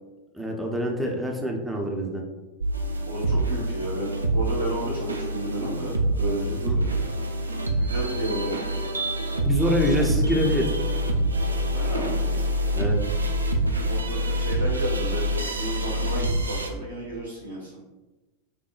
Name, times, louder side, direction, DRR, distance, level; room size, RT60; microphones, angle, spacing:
voice 1, 0.3-2.2 6.5-6.8 9.4-10.7 12.7-13.0, equal, 5° right, 0 dB, 0.6 m, -25 dB
sound 1, 2.6-16.7, right 1 dB, 80° right, 0.4 m, -26 dB
voice 2, 3.0-6.8 7.8-8.6 10.0-10.2 11.7-12.1 13.8-17.7, right 1 dB, 90° left, -8 dB, 1.4 m, -32 dB
5.9 x 2.1 x 2.4 m, 1.1 s
figure-of-eight pair, 90°, 0 cm